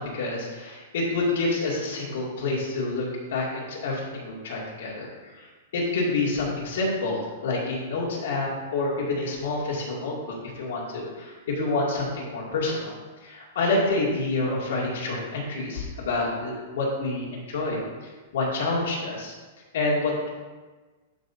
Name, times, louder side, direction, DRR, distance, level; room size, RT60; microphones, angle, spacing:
voice 1, 0.0-12.9 13.2-17.8 18.3-19.3 19.7-20.3, left 2 dB, 65° left, -3 dB, 2.4 m, -28 dB
12.0 x 5.4 x 2.7 m, 1.3 s
supercardioid pair, 175°, 0 cm